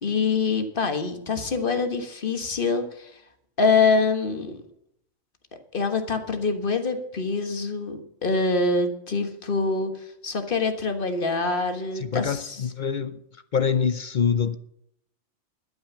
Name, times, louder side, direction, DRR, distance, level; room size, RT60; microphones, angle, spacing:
voice 1, 0.0-3.1 3.6-4.6 5.7-9.9 10.2-12.5, left 4 dB, 40° left, 1.6 m, -25 dB
voice 2, 11.9-13.2 13.5-14.6, left 6 dB, 55° left, 0.5 m, -25 dB
12.0 x 8.7 x 7.0 m
omnidirectional pair, 1.4 m